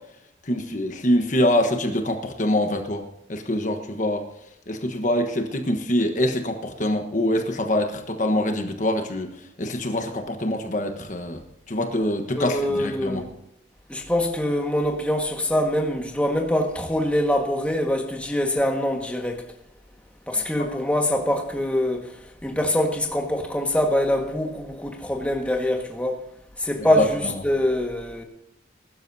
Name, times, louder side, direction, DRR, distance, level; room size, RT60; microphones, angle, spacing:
voice 1, 0.5-3.0 3.3-4.2 4.7-9.3 9.6-11.4 11.7-13.2 20.6-20.7 27.0-27.3, left 1 dB, 40° left, 1.2 m, -24 dB
voice 2, 12.3-13.3 13.9-19.4 20.3-22.1 22.4-26.2 26.6-28.2, left 1 dB, 5° left, 1.6 m, -24 dB
21.0 x 12.0 x 2.8 m
head